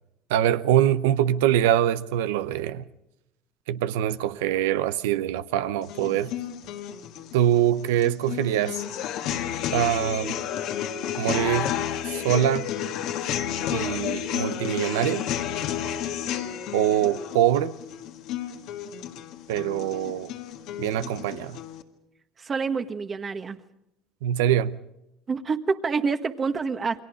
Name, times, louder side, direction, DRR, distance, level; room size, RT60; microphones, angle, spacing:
voice 1, 0.3-2.8 3.7-6.3 7.3-8.8 9.7-10.4 11.2-11.7 12.0-12.7 13.7-15.3 16.7-17.7 19.5-20.3 20.8-21.6 24.2-24.8, right 11 dB, 90° right, 0.8 m, -24 dB
sound 1, 5.8-21.8, left 10 dB, 70° left, 1.8 m, -31 dB
voice 2, 22.4-23.6 25.3-27.0, right 5 dB, 30° right, 1.4 m, -27 dB
29.0 x 22.5 x 5.0 m
supercardioid pair, 90°, 0 cm